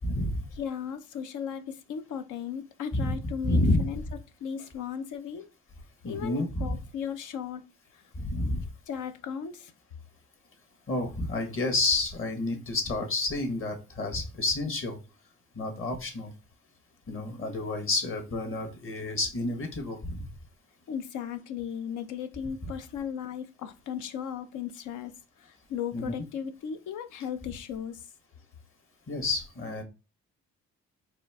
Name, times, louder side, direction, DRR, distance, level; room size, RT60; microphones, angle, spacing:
voice 1, 0.0-0.4 2.9-3.1 3.4-3.8 6.0-6.7 8.2-8.6 10.9-15.0 15.5-16.3 17.1-20.3 25.9-26.1 29.1-29.8, left 2 dB, 45° left, 1.4 m, -29 dB
voice 2, 0.6-4.0 4.4-5.5 6.0-7.6 8.9-9.7 20.9-25.1 25.4-28.0, left 8 dB, 85° left, 0.7 m, -36 dB
4.4 x 2.7 x 3.4 m
cardioid pair, 90°, 30 cm